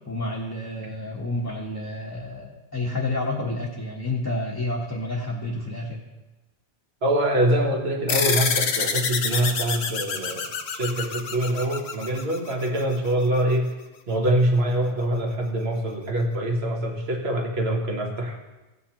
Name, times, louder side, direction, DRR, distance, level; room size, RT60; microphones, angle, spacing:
voice 1, 0.1-6.0, left 2 dB, 15° left, -5 dB, 0.9 m, -29 dB
voice 2, 7.0-13.7 14.1-18.4, right 1 dB, 60° right, 1 dB, 1.5 m, -24 dB
sound 1, 8.1-13.0, left 6 dB, 70° left, 1.0 m, -27 dB
15.5 x 8.3 x 2.9 m, 1.1 s
omnidirectional pair, 1.2 m